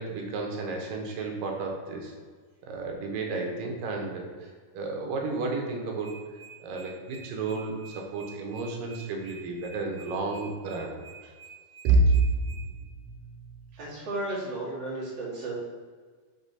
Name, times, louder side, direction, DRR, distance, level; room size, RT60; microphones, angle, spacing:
voice 1, 0.0-2.1 2.7-4.5 4.7-6.1 6.6-10.9 11.8-12.5 14.3-14.4, right 3 dB, 80° right, 1 dB, 2.6 m, -29 dB
sound 1, 6.0-12.6, right 6 dB, 80° left, 2.9 m, -49 dB
voice 2, 13.8-15.6, right 2 dB, 35° right, -7 dB, 2.5 m, -34 dB
6.7 x 3.7 x 5.6 m, 1.5 s
omnidirectional pair, 3.9 m